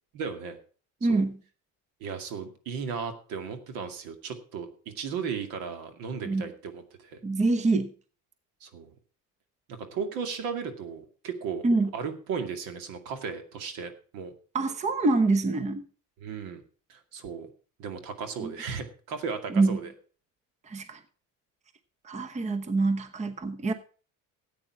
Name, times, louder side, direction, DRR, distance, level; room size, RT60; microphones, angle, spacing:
voice 1, 0.1-0.6 1.0-1.2 2.0-7.2 8.6-8.9 9.7-11.6 11.9-14.3 16.2-16.6 16.9-17.5 17.8-19.9, right 6 dB, 80° right, 7 dB, 2.3 m, -35 dB
voice 2, 1.0-1.4 6.2-6.4 7.2-7.9 11.6-11.9 14.5-15.8 18.4-18.5 19.5-19.8 20.7-21.0 22.0-23.7, right 3 dB, 20° right, 11 dB, 1.0 m, -25 dB
13.5 x 8.7 x 4.7 m, 0.40 s
cardioid pair, 140°, 35 cm